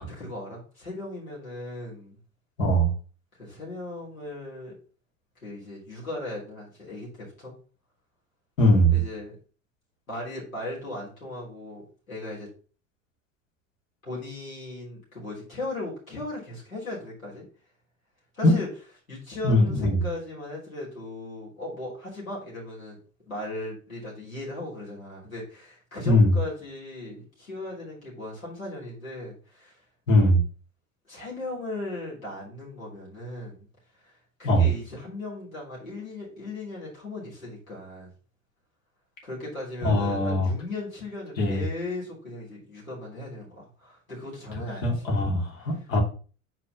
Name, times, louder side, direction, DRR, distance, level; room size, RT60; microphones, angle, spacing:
voice 1, 0.0-2.2 3.4-4.7 5.4-7.5 8.9-9.4 10.1-12.5 14.0-17.4 18.3-18.7 19.1-23.0 23.3-29.8 31.1-33.7 34.0-38.1 39.2-45.2 45.6-45.7, left 2 dB, 85° left, -5 dB, 3.6 m, -37 dB
voice 2, 2.6-2.9 8.6-9.0 18.4-18.5 19.4-20.0 26.0-26.3 30.1-30.4 34.4-34.7 39.8-40.5 41.4-41.6 44.8-46.0, equal, 70° left, -1 dB, 2.8 m, -21 dB
4.9 x 4.5 x 5.8 m, 0.37 s
figure-of-eight pair, 75°, 40 cm